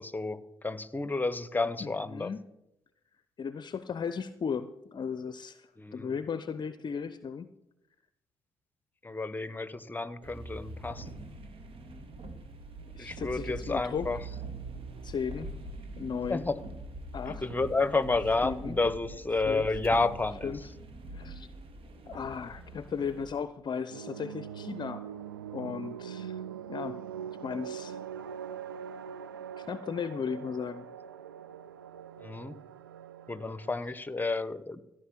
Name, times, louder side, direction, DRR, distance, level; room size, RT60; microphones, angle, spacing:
voice 1, 0.0-2.3 5.8-6.1 9.0-11.2 13.0-14.2 16.3-16.6 17.3-20.5 32.2-32.6 33.3-34.8, left 3 dB, 15° left, 16 dB, 1.0 m, -31 dB
voice 2, 1.8-2.4 3.4-7.5 12.9-14.2 15.0-15.5 16.0-16.5 17.1-17.4 18.4-18.8 19.5-19.7 20.4-20.7 21.1-21.5 22.1-25.0 25.5-26.4 26.7-27.0 27.4-28.0 29.6-30.9, left 6 dB, 40° left, 13 dB, 0.6 m, -36 dB
sound 1, 10.2-23.3, right 2 dB, 55° right, 1.9 m, -43 dB
sound 2, 23.9-33.8, right 8 dB, 85° right, 0.4 m, -42 dB
14.5 x 6.4 x 9.2 m, 0.89 s
figure-of-eight pair, 40°, 11 cm